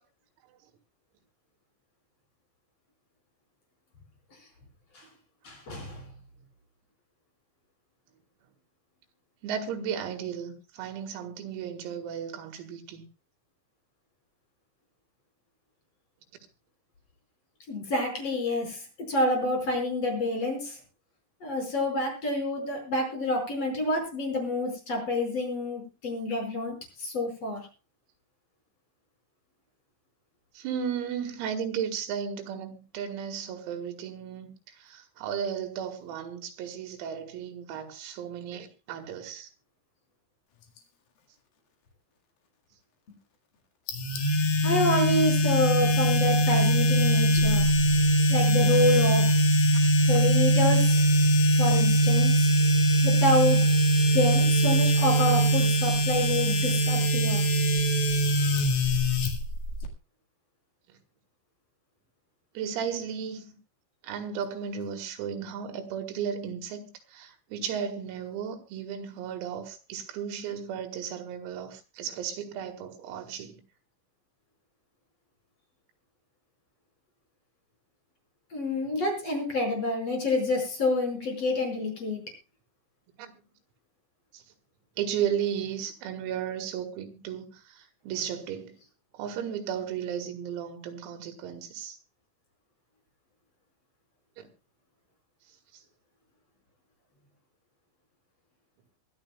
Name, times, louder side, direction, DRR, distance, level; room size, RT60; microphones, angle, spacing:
voice 1, 5.4-6.0 17.7-20.8 21.4-27.6 44.6-47.7 48.3-49.4 50.1-51.1 51.6-52.5 53.0-53.7 54.1-57.4 78.5-82.2, left 1 dB, 30° left, 5.9 m, -28 dB
voice 2, 9.4-13.1 30.6-39.5 62.6-63.6 64.0-73.6 83.2-83.3 84.3-84.4 85.0-88.7 89.1-92.0 94.4-94.5, right 8 dB, 85° right, 4.6 m, -35 dB
sound 1, 43.9-59.9, right 1 dB, 55° left, 3.1 m, -22 dB
24.0 x 12.0 x 2.3 m
omnidirectional pair, 6.0 m